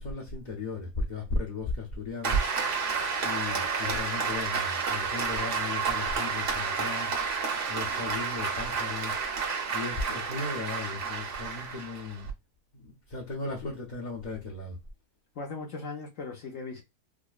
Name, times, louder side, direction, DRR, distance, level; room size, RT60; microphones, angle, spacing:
voice 1, 0.0-2.4 3.2-7.1 7.7-9.1 9.7-12.3 12.7-14.8, left 3 dB, 40° left, 0.6 m, -36 dB
Applause, 2.2-12.3, right 5 dB, 55° right, 1.1 m, -30 dB
voice 2, 15.3-16.8, left 4 dB, 60° left, 0.9 m, -38 dB
4.8 x 2.1 x 2.3 m
omnidirectional pair, 1.7 m